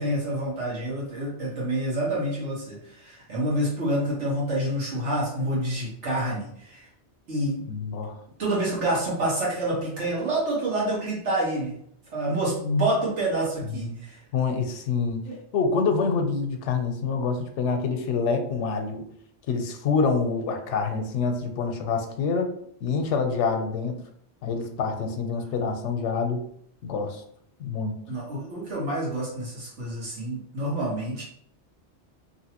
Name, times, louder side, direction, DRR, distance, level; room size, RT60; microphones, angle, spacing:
voice 1, 0.0-6.9 7.3-7.6 8.4-11.8 12.1-14.2 15.3-15.4 28.1-31.2, right 1 dB, 90° right, -5 dB, 1.6 m, -27 dB
voice 2, 7.7-8.2 13.7-14.0 14.3-19.0 19.5-22.5 22.8-24.0 24.4-26.4 26.8-27.2 27.6-27.9, left 5 dB, 90° left, 5 dB, 0.9 m, -26 dB
3.0 x 2.7 x 2.8 m, 0.68 s
omnidirectional pair, 1.2 m